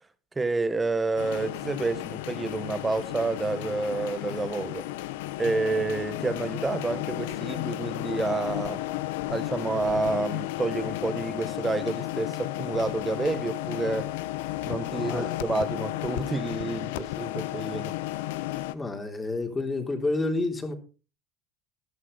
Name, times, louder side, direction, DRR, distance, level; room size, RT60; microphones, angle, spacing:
voice 1, 0.3-4.8 5.4-8.8 9.3-14.1 14.6-17.9, right 3 dB, 20° right, 1.5 m, -29 dB
sound 1, 1.2-18.7, left 16 dB, 75° left, 0.8 m, -33 dB
voice 2, 18.7-20.7, left 2 dB, 20° left, 3.4 m, -29 dB
13.0 x 12.5 x 4.0 m
hypercardioid pair, 80°, 0 cm